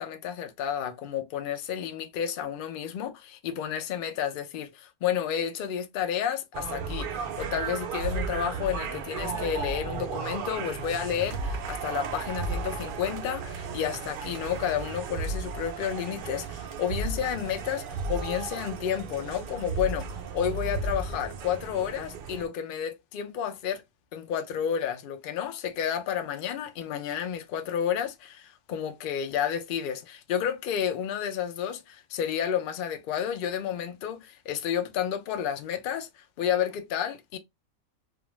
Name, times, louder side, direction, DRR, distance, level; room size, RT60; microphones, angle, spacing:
voice 1, 0.0-20.1 20.3-23.8 24.1-37.4, left 9 dB, 75° left, 0.4 m, -31 dB
sound 1, 6.5-22.5, right 4 dB, 80° right, 0.4 m, -34 dB
2.4 x 2.2 x 3.0 m
omnidirectional pair, 1.4 m